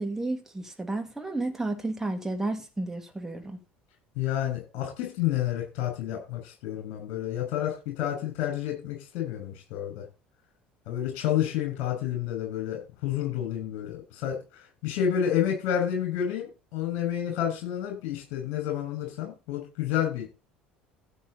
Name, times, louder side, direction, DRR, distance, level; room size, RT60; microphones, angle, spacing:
voice 1, 0.0-3.6, right 2 dB, 10° right, 2.6 m, -32 dB
voice 2, 4.2-10.0 10.9-14.4 14.8-20.3, left 10 dB, 55° left, 6.5 m, -30 dB
15.5 x 7.0 x 4.3 m
figure-of-eight pair, 60°, 5 cm